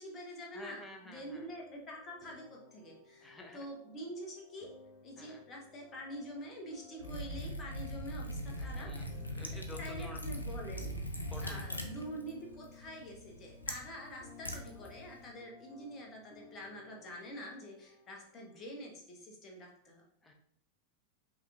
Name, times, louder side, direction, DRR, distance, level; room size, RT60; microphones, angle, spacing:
voice 1, 0.0-4.7 5.0-8.9 9.8-20.0, equal, 25° left, 0 dB, 1.2 m, -46 dB
voice 2, 0.5-1.5 3.2-3.7 5.2-5.4 8.6-10.2 11.3-11.8 20.2-20.3, left 1 dB, 10° left, 2 dB, 0.8 m, -50 dB
sound 1, 1.1-18.8, left 4 dB, 45° left, 0.7 m, -58 dB
Liquid, 7.0-15.3, equal, 80° left, 0.5 m, -41 dB
5.4 x 3.1 x 2.5 m, 0.66 s
figure-of-eight pair, 90°, 0 cm